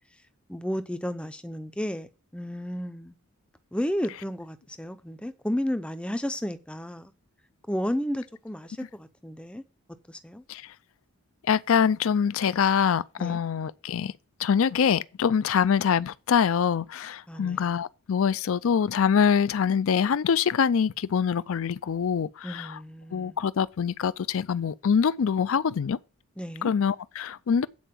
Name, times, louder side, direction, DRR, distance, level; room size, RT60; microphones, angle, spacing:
voice 1, 0.5-3.1 3.7-7.1 7.7-9.6 10.1-10.4 13.2-13.4 17.3-17.7 22.4-23.4 26.4-26.7, equal, 5° left, 0.5 m, -32 dB
voice 2, 11.5-14.1 14.4-22.8 23.1-26.0 26.6-27.7, left 7 dB, 65° left, 0.4 m, -24 dB
8.6 x 4.5 x 7.3 m
head